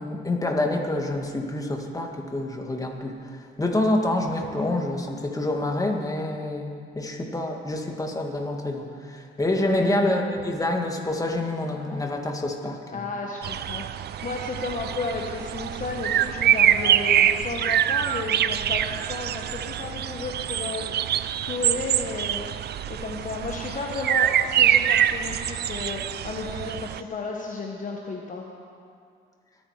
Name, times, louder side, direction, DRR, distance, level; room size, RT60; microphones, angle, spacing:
voice 1, 0.0-3.3 3.6-13.0, left 1 dB, 15° left, 2 dB, 1.9 m, -27 dB
voice 2, 9.5-10.0 12.9-13.8 14.2-21.2 21.4-22.5 22.9-28.5, left 3 dB, 40° left, 0 dB, 1.2 m, -33 dB
sound 1, 13.4-27.0, right 10 dB, 55° right, 0.5 m, -25 dB
22.5 x 9.1 x 4.9 m, 2.3 s
cardioid pair, 90°, 20 cm